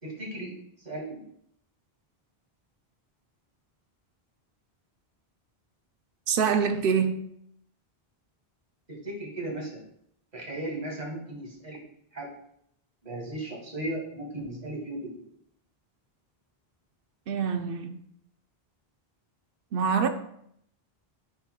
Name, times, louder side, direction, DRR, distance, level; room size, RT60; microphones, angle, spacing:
voice 1, 0.0-1.3 8.9-9.8 10.3-11.8 12.1-12.3 13.0-15.2, right 1 dB, 45° right, 1.9 m, -36 dB
voice 2, 6.3-7.3 17.3-18.0 19.7-20.1, right 6 dB, 65° right, 0.8 m, -25 dB
9.7 x 4.3 x 2.3 m
omnidirectional pair, 1.0 m